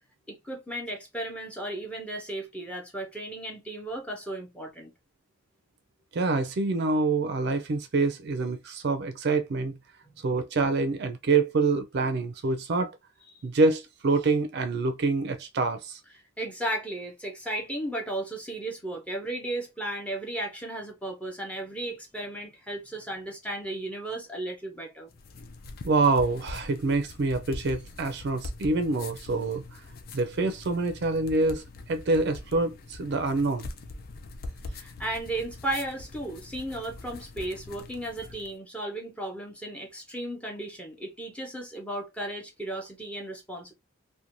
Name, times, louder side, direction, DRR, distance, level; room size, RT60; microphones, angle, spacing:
voice 1, 0.3-4.9 13.3-13.4 16.4-25.1 34.7-43.7, right 1 dB, 5° left, 0.6 m, -35 dB
voice 2, 6.1-9.8 10.2-12.9 13.4-16.0 25.8-29.8 30.1-33.7, right 3 dB, 55° right, 0.4 m, -26 dB
sound 1, 25.1-38.6, left 2 dB, 45° left, 0.3 m, -43 dB
2.5 x 2.1 x 2.9 m
head